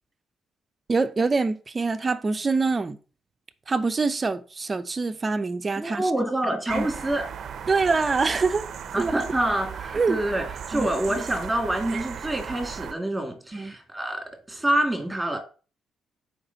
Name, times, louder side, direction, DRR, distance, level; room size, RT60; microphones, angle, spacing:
voice 1, 0.9-3.0 3.7-6.2 6.7-6.9 7.7-8.7 9.0-9.1 9.9-10.2 10.7-10.9 13.5-13.7, right 4 dB, 30° right, 0.8 m, -25 dB
voice 2, 5.8-7.3 8.9-14.2 14.5-15.4, right 1 dB, 10° right, 2.4 m, -27 dB
sound 1, 6.7-12.9, right 7 dB, 60° right, 0.7 m, -36 dB
7.2 x 5.2 x 4.1 m
cardioid pair, 90°, 0 cm